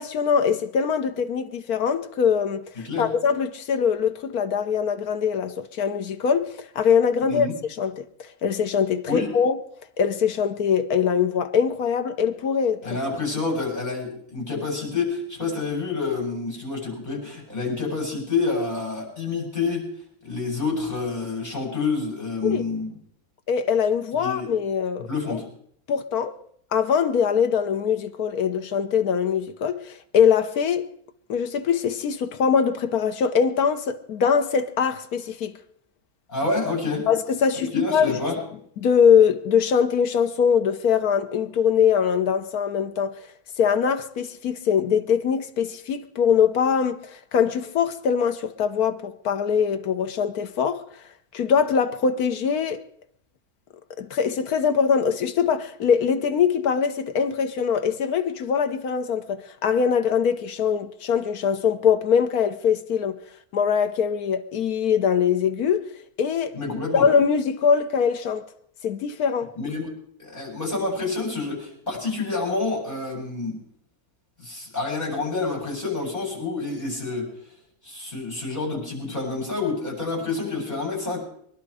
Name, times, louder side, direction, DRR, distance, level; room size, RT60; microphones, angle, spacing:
voice 1, 0.0-7.5 7.8-8.1 8.4-9.6 10.0-12.9 13.4-13.5 22.4-22.7 23.5-25.4 25.9-26.4 26.7-30.9 31.3-35.6 37.1-38.2 38.8-43.2 43.6-50.8 51.3-52.8 54.0-63.2 63.5-65.9 66.2-66.6 66.9-68.5 68.8-69.5, left 7 dB, 80° left, 1.5 m, -22 dB
voice 2, 12.8-19.9 20.2-22.9 24.2-24.5 25.1-25.4 36.3-37.1 37.5-38.4 66.5-67.1 69.6-69.9 70.2-73.6 74.4-77.2 77.8-81.2, left 3 dB, 30° left, 8.0 m, -28 dB
23.0 x 11.5 x 4.9 m
omnidirectional pair, 1.6 m